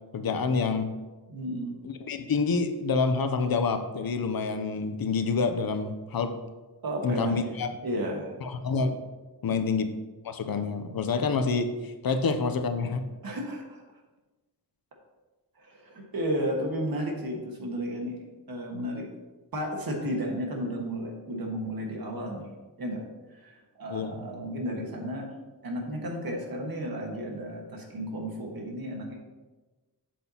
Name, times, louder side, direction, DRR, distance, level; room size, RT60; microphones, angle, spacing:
voice 1, 0.1-0.9 1.8-6.3 7.0-7.7 8.4-9.0 9.4-9.9 10.2-13.1 23.9-24.2, left 4 dB, 60° left, 8 dB, 0.7 m, -27 dB
voice 2, 1.3-1.8 6.8-8.4 9.5-9.6 13.2-13.8 15.6-18.2 18.5-19.1 19.5-22.5 22.8-23.0 23.3-25.3 25.6-29.2, equal, 60° right, 0 dB, 1.6 m, -33 dB
8.1 x 7.6 x 2.9 m, 1.2 s
wide cardioid pair, 155°, 40 cm